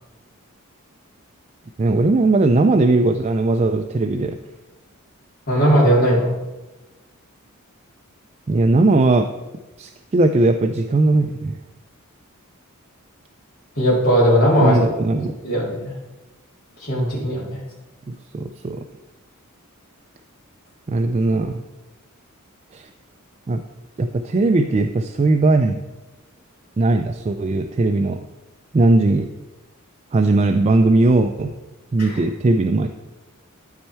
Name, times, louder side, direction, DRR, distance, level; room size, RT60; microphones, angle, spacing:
voice 1, 1.8-4.4 8.5-9.3 9.8-11.6 14.6-15.4 18.1-18.8 20.9-21.6 22.7-22.9 23.5-23.6 24.0-25.8 26.8-28.2 28.7-29.3 30.1-31.6 31.9-32.9, right 2 dB, 30° right, 6 dB, 0.3 m, -18 dB
voice 2, 5.5-6.3 13.7-14.8 15.1-15.9 16.9-17.6 32.0-32.2, equal, 45° left, -10 dB, 2.6 m, -18 dB
12.0 x 4.4 x 4.4 m, 1.1 s
head